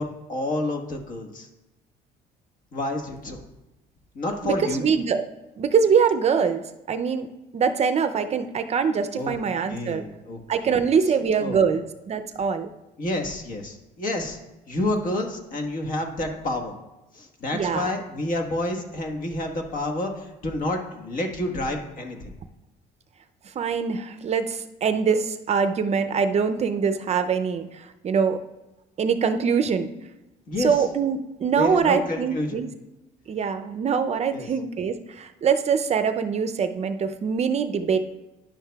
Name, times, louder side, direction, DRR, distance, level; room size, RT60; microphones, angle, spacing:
voice 1, 0.0-1.5 2.7-3.5 4.1-4.9 9.1-9.3 9.7-10.4 10.6-11.1 11.4-11.6 13.0-14.4 14.7-16.7 17.1-22.3 30.5-30.8 31.5-32.6 34.3-34.5, left 1 dB, 55° left, 4 dB, 1.4 m, -29 dB
voice 2, 4.4-5.2 5.6-7.3 7.5-10.0 10.5-12.7 17.5-17.9 23.6-28.4 29.0-29.9 30.6-32.7 33.3-38.1, right 6 dB, 40° right, 9 dB, 0.5 m, -23 dB
10.5 x 7.3 x 2.3 m, 1.0 s
cardioid pair, 110°, 17 cm